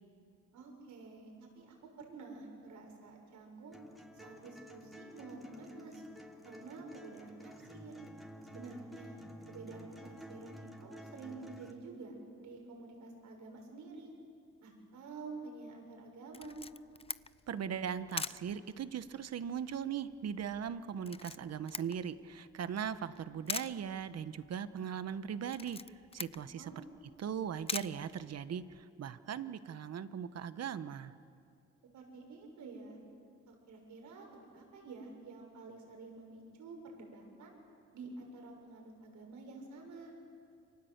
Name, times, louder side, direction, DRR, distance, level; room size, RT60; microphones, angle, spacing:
voice 1, 0.5-3.8 4.2-6.0 6.4-8.0 8.5-9.2 9.5-12.1 12.4-14.1 14.6-16.6 26.6-26.9 31.9-33.0 33.5-34.3 34.5-37.5 37.9-40.1, right 3 dB, 75° right, 1 dB, 7.0 m, -49 dB
sound 1, 3.7-11.7, equal, ahead, 3.2 m, -52 dB
Camera, 16.3-28.8, left 4 dB, 20° left, 0.6 m, -46 dB
voice 2, 17.5-25.8 26.1-26.7 27.2-31.1, right 8 dB, 55° right, 12 dB, 1.3 m, -39 dB
29.0 x 25.0 x 8.2 m, 2.4 s
cardioid pair, 90°, 30 cm